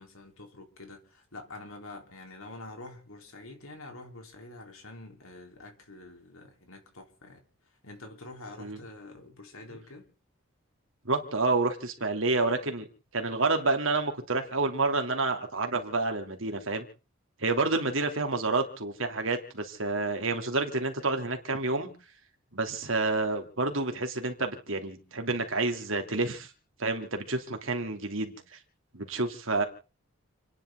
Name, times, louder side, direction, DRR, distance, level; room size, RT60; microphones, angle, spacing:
voice 1, 0.0-7.4 7.8-10.1, left 2 dB, 75° left, 3.7 m, -46 dB
voice 2, 11.0-12.9 13.1-16.8 17.4-21.9 22.5-26.5 26.8-28.3 28.9-29.6, right 3 dB, 65° right, 2.9 m, -29 dB
29.5 x 10.5 x 3.8 m
head